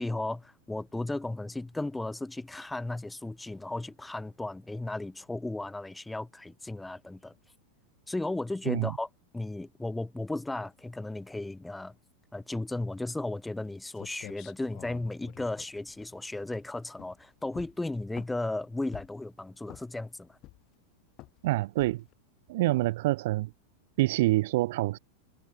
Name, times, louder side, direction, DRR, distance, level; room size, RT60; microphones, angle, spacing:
voice 1, 0.0-7.3 8.1-9.1 9.3-12.0 12.3-20.4, left 2 dB, 5° left, 1.0 m, -35 dB
sound 1, 13.7-13.8 14.0-16.6 16.9-17.2 17.5-18.5 18.9-19.3 19.7-20.1 20.4-20.8 21.2-21.4 21.8-22.1, left 18 dB, 40° left, 2.4 m, -48 dB
voice 2, 21.4-22.0 22.5-23.5 24.0-25.0, right 18 dB, 50° right, 0.6 m, -26 dB
figure-of-eight pair, 90°, 0 cm